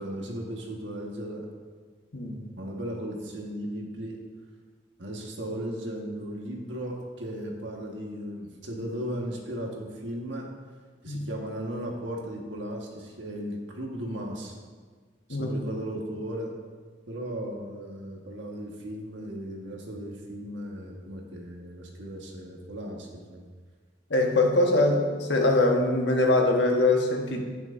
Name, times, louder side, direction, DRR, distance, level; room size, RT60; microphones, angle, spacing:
voice 1, 0.0-1.5 2.5-4.2 5.0-10.5 11.0-14.5 15.3-16.5 17.1-23.5, equal, 85° right, 0 dB, 1.6 m, -36 dB
voice 2, 24.1-27.4, left 2 dB, 75° left, 1 dB, 1.3 m, -23 dB
10.5 x 9.1 x 2.6 m, 1.5 s
head